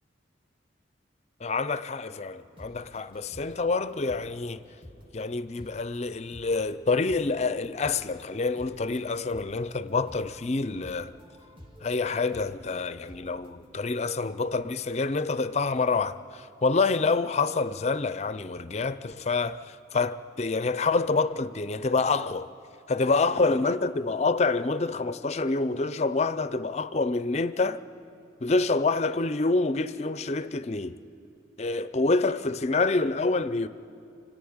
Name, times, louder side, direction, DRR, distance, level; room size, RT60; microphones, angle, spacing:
voice 1, 1.4-4.6 5.1-11.1 11.8-22.5 22.9-27.8 28.4-31.0 31.6-33.7, left 3 dB, 35° left, 0.5 m, -27 dB
sound 1, 2.4-13.8, equal, 30° right, 1.8 m, -51 dB
29.0 x 10.5 x 8.7 m
head